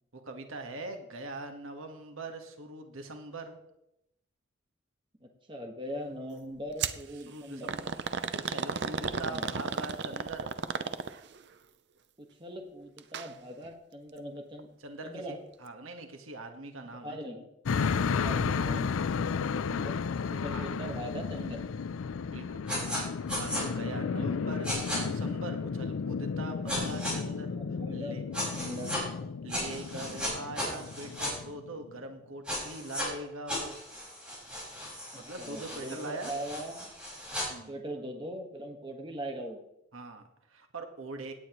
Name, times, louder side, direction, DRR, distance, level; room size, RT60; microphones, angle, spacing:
voice 1, 0.1-3.6 7.3-7.9 8.5-10.5 14.8-17.2 17.7-18.1 20.5-20.7 22.3-22.6 23.3-27.5 27.9-28.2 29.4-33.8 35.1-36.4 37.5-37.7 39.9-41.3, right 2 dB, 85° right, 5 dB, 1.4 m, -42 dB
voice 2, 5.2-7.7 9.2-9.5 12.2-14.7 15.0-15.4 17.0-17.4 18.1-19.0 19.4-20.0 20.3-21.6 23.9-24.3 26.5-26.8 27.2-28.2 28.5-28.9 30.0-30.2 35.1-36.9 37.7-39.6, equal, 25° right, 3 dB, 1.4 m, -41 dB
sound 1, 6.8-7.0 7.7-11.4 13.0-13.3 13.6-13.7 14.6-14.7, right 5 dB, 55° right, 0.6 m, -33 dB
sound 2, 17.7-31.9, left 5 dB, 90° left, 0.5 m, -33 dB
sound 3, 22.7-23.0 23.3-23.6 24.6-25.0 26.7-27.1 28.3-29.0 29.5-31.3 32.5-33.1 33.5-37.5, left 1 dB, 5° right, 5.2 m, -36 dB
17.5 x 8.9 x 3.0 m, 0.83 s
head